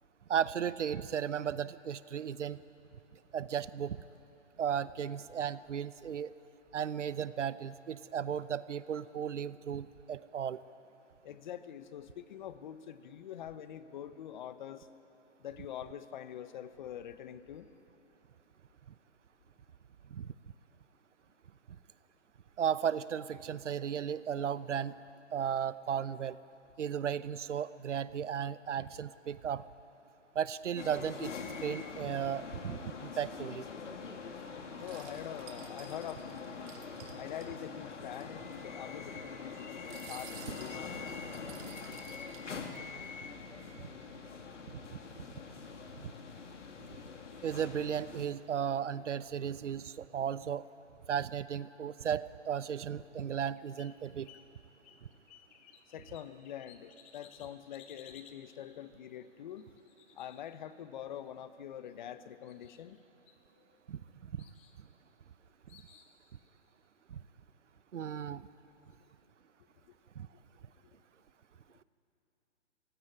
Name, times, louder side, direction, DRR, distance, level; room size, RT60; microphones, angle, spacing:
voice 1, 0.3-2.6 3.3-4.0 4.6-6.3 6.7-10.6 20.1-20.3 22.6-25.0 25.3-26.4 26.8-29.6 30.3-31.3 31.6-33.6 44.9-45.0 46.0-46.1 47.4-50.7 51.1-54.3 63.9-64.0 67.9-68.5 70.2-70.3, right 8 dB, 80° right, 16 dB, 0.9 m, -35 dB
voice 2, 11.2-14.9 15.4-17.7 34.8-36.5 37.1-40.8 55.9-59.7 60.1-63.0, left 10 dB, 40° left, 12 dB, 1.0 m, -45 dB
sound 1, 30.8-48.3, left 5 dB, 80° left, 2.6 m, -44 dB
sound 2, 34.8-37.5 37.9-38.0 38.1-38.3 39.7-42.9, right 9 dB, 30° right, 2.0 m, -53 dB
sound 3, 53.3-54.5 54.8-58.4 59.5-61.0 61.9-62.1 62.4-63.0 63.3-64.0 64.4-64.8 65.7-66.2, left 8 dB, 10° left, 0.5 m, -59 dB
25.0 x 16.0 x 9.7 m, 2.9 s
hypercardioid pair, 150°, 36 cm